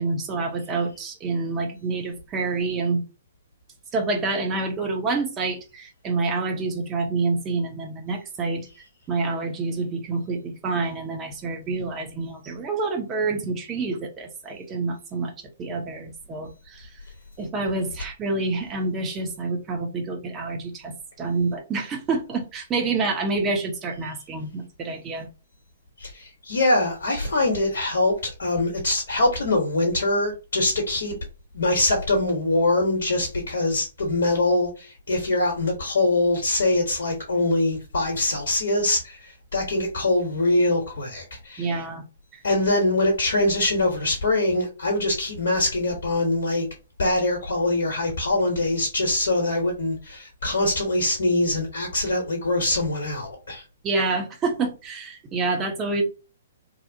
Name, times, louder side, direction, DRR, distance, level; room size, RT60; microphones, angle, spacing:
voice 1, 0.0-3.0 3.9-8.7 9.1-16.9 17.4-25.3 41.6-42.0 42.3-42.4 53.8-56.0, right 3 dB, 20° right, 0.6 m, -27 dB
voice 2, 26.0-31.1 31.5-41.8 42.4-46.7 47.0-53.6, left 2 dB, 55° left, 0.8 m, -23 dB
2.7 x 2.0 x 2.6 m
figure-of-eight pair, 120°, 0 cm